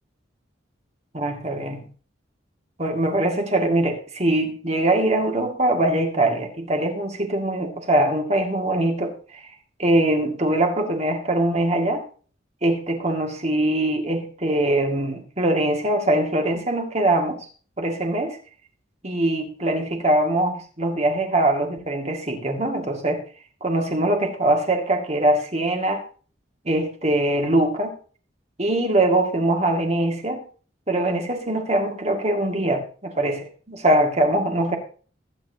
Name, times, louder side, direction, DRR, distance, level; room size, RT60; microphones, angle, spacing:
voice 1, 1.1-1.9 2.8-9.4 9.8-12.0 12.6-17.4 17.8-18.4 19.0-23.2 23.6-26.0 26.7-27.9 28.6-30.4 30.9-34.8, right 1 dB, 35° right, 3 dB, 2.2 m, -22 dB
21.0 x 9.2 x 2.9 m, 0.40 s
head